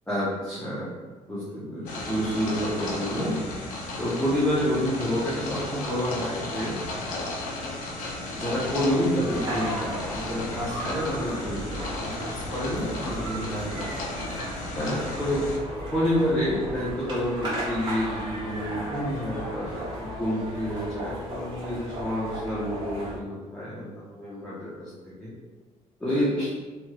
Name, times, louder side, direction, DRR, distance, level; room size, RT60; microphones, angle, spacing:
voice 1, 0.1-1.0 1.3-3.4 4.0-6.8 8.3-13.9 14.7-15.4 15.9-19.8 20.2-25.3 26.0-26.5, equal, 5° left, -9 dB, 0.7 m, -29 dB
sound 1, 1.9-15.6, left 2 dB, 85° left, 0.6 m, -34 dB
sound 2, 9.2-23.2, equal, 35° right, 1.4 m, -35 dB
3.1 x 2.8 x 2.3 m, 1.3 s
cardioid pair, 130°, 13 cm